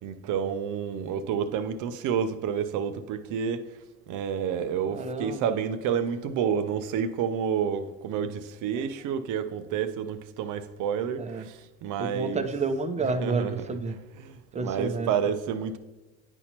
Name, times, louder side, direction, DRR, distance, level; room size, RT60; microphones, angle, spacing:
voice 1, 0.0-3.8 4.1-12.5 13.2-13.7 14.2-15.8, right 7 dB, 60° right, 0.6 m, -29 dB
voice 2, 4.9-5.6 11.2-11.4 12.0-14.0 14.5-15.1, right 3 dB, 20° right, 0.7 m, -30 dB
9.7 x 4.3 x 2.9 m
supercardioid pair, 100°, 35 cm